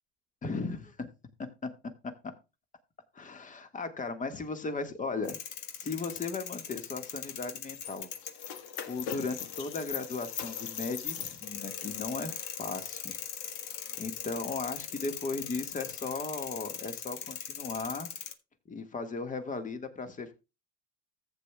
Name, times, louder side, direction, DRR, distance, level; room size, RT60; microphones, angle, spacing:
voice 1, 0.4-1.1 3.1-5.4 5.8-8.1 8.9-13.2 14.0-18.1 18.7-20.3, left 4 dB, 25° left, 8 dB, 1.7 m, -36 dB
sound 1, 5.2-18.3, left 9 dB, 70° left, 1.5 m, -40 dB
14.0 x 8.3 x 2.3 m, 0.27 s
supercardioid pair, 95°, 33 cm